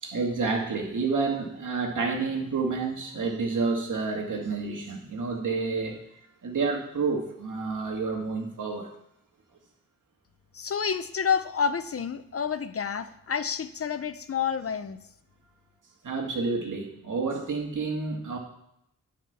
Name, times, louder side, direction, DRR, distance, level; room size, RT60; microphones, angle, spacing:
voice 1, 0.0-6.0 6.4-8.9 16.0-18.4, right 4 dB, 70° right, 1 dB, 2.0 m, -29 dB
voice 2, 10.5-15.0, left 7 dB, 45° left, 12 dB, 0.5 m, -29 dB
10.0 x 4.9 x 7.1 m, 0.79 s
wide cardioid pair, 170°, 32 cm